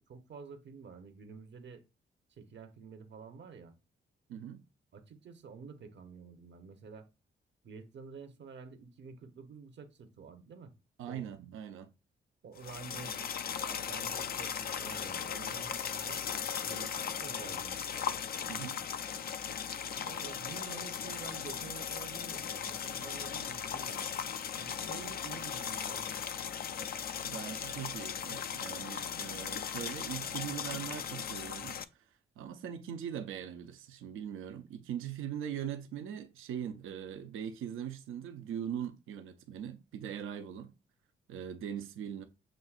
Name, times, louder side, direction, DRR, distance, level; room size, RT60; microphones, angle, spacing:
voice 1, 0.0-1.8 2.4-3.7 4.9-7.1 7.6-10.7 11.1-11.6 12.4-16.2 16.6-17.8 20.0-24.1 24.5-26.2, right 5 dB, 60° right, 0.9 m, -49 dB
voice 2, 4.3-4.6 11.0-11.9 18.5-18.8 27.2-31.8 32.4-40.7 41.3-42.2, right 9 dB, 90° right, 0.6 m, -41 dB
sound 1, 12.6-31.8, left 7 dB, 50° left, 0.4 m, -38 dB
7.3 x 2.7 x 2.4 m
cardioid pair, 60°, 20 cm